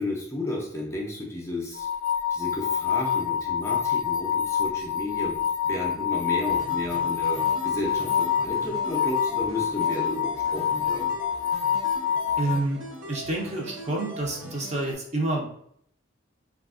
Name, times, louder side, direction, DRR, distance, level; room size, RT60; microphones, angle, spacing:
voice 1, 0.0-1.9 2.3-11.2, left 1 dB, 15° left, -2 dB, 0.5 m, -33 dB
sound 1, 1.8-12.6, left 8 dB, 70° left, 0.4 m, -26 dB
sound 2, 6.5-14.9, equal, 90° right, 1.0 m, -41 dB
voice 2, 12.4-12.8 13.1-15.5, right 2 dB, 35° right, -1 dB, 0.6 m, -28 dB
3.4 x 2.4 x 2.3 m, 0.68 s
head